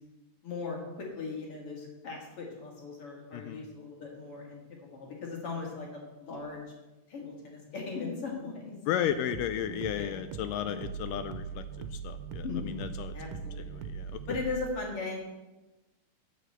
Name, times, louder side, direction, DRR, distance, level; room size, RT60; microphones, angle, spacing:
voice 1, 0.4-6.6 7.1-8.8 9.9-10.2 12.4-12.9 13.1-13.9 14.3-15.2, left 4 dB, 45° left, -1 dB, 2.6 m, -38 dB
voice 2, 3.3-3.6 8.9-14.2, left 10 dB, 80° left, 10 dB, 2.0 m, -34 dB
sound 1, 9.1-14.7, right 6 dB, 85° right, 2.5 m, -41 dB
8.8 x 5.2 x 7.8 m, 1.1 s
omnidirectional pair, 4.1 m